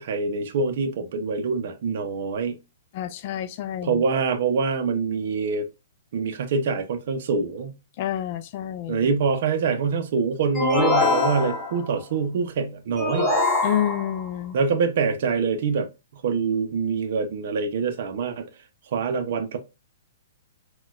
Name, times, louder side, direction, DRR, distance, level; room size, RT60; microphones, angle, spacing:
voice 1, 0.0-2.6 3.8-5.7 6.1-7.7 8.9-13.4 14.5-15.9 16.2-18.4 18.9-19.6, right 5 dB, 55° right, 0.5 m, -25 dB
voice 2, 2.9-4.0 8.0-9.1 13.6-14.6, left 11 dB, 45° left, 0.4 m, -28 dB
sound 1, 10.5-11.9 13.0-14.3, left 3 dB, 10° left, 0.9 m, -23 dB
4.0 x 2.2 x 2.3 m
hypercardioid pair, 145°, 0 cm